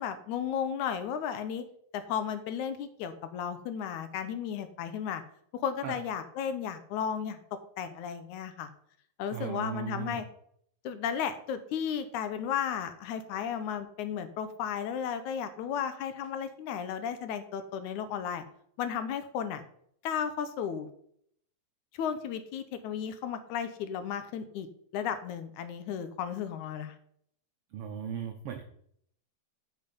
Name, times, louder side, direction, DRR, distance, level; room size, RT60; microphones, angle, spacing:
voice 1, 0.0-1.6 1.9-5.2 5.5-7.4 7.8-8.7 9.2-10.2 10.8-18.4 18.8-19.6 20.0-20.9 21.9-24.7 24.9-27.0, left 8 dB, 75° left, 10 dB, 2.0 m, -34 dB
voice 2, 9.3-10.2 27.7-28.6, right 8 dB, 90° right, 5 dB, 1.2 m, -37 dB
9.0 x 5.6 x 5.2 m, 0.66 s
omnidirectional pair, 3.7 m